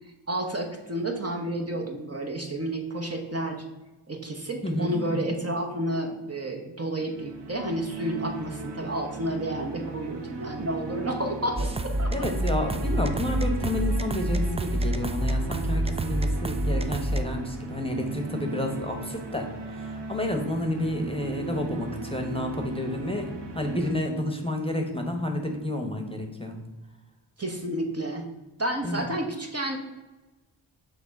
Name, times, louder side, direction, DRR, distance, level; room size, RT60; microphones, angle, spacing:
voice 1, 0.3-3.6 4.1-12.1 27.4-28.2 28.6-29.8, right 1 dB, 30° right, 2 dB, 0.9 m, -31 dB
voice 2, 4.6-5.4 12.1-26.6 28.8-29.0, left 1 dB, 10° left, 3 dB, 1.0 m, -30 dB
sound 1, 7.0-24.0, right 4 dB, 55° right, 0.9 m, -37 dB
sound 2, 11.6-17.2, equal, 15° right, 0.3 m, -27 dB
6.0 x 3.3 x 5.2 m, 1.1 s
cardioid pair, 50°, 49 cm